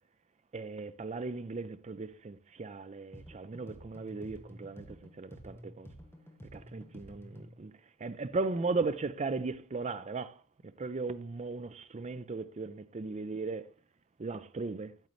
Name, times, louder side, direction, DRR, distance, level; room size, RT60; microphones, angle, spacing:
voice 1, 0.5-5.9 6.5-7.7 8.0-10.4 10.8-13.7 14.2-14.9, right 3 dB, 30° right, 0.4 m, -37 dB
sound 1, 3.1-7.7, equal, 10° left, 1.0 m, -51 dB
9.0 x 7.0 x 3.1 m
head